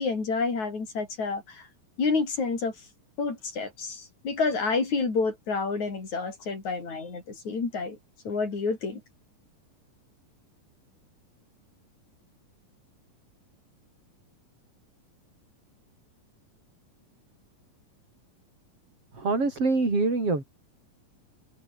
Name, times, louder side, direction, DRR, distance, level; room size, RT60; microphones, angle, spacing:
voice 1, 0.0-1.7 2.0-2.7 3.2-8.0 8.2-9.0, left 4 dB, 55° left, 6.5 m, -29 dB
voice 2, 19.1-20.4, right 3 dB, 40° right, 7.7 m, -25 dB
omnidirectional pair, 4.0 m